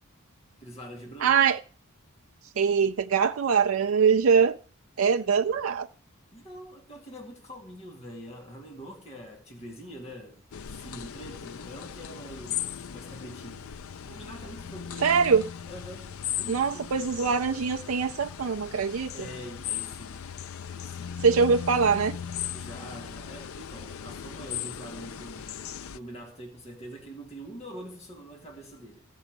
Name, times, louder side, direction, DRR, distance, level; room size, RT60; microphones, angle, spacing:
voice 1, 0.6-1.4 5.0-5.1 6.3-10.4 10.7-13.7 14.0-15.3 15.7-17.2 19.1-20.3 20.7-21.1 22.5-29.0, equal, 30° left, 2.2 m, -44 dB
voice 2, 1.2-1.6 2.6-4.6 5.0-5.9 15.0-15.5 16.5-19.1 21.2-22.2, right 6 dB, 70° right, 0.4 m, -23 dB
sound 1, 10.5-26.0, left 9 dB, 75° left, 0.5 m, -38 dB
14.0 x 5.5 x 8.0 m
head